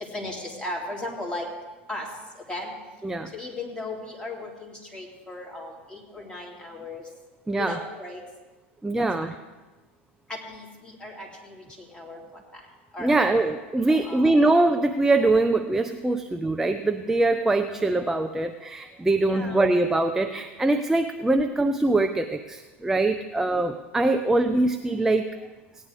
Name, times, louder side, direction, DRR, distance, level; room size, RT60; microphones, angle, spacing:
voice 1, 0.0-1.5 1.9-2.1 2.5-2.7 3.3-7.0 7.6-8.2 9.0-9.3 10.3-12.6 12.9-14.4 19.2-19.8, left 2 dB, 15° left, -2 dB, 2.9 m, -37 dB
voice 2, 7.5-7.8 8.8-9.3 13.0-25.3, right 2 dB, 5° right, 7 dB, 0.5 m, -23 dB
17.0 x 9.6 x 3.6 m, 1.2 s
hypercardioid pair, 95°, 7 cm